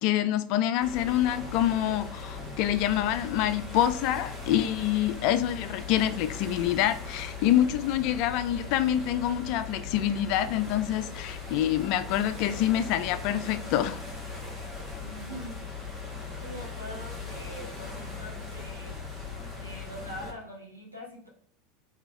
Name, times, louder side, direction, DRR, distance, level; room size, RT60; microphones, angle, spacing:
voice 1, 0.0-14.0, left 11 dB, 50° left, 0.3 m, -26 dB
sound 1, 0.8-20.3, left 4 dB, 10° right, 1.3 m, -39 dB
voice 2, 15.0-15.7 16.4-19.0 19.6-21.3, equal, 90° right, 1.3 m, -43 dB
3.8 x 3.8 x 2.4 m
figure-of-eight pair, 80°, 0 cm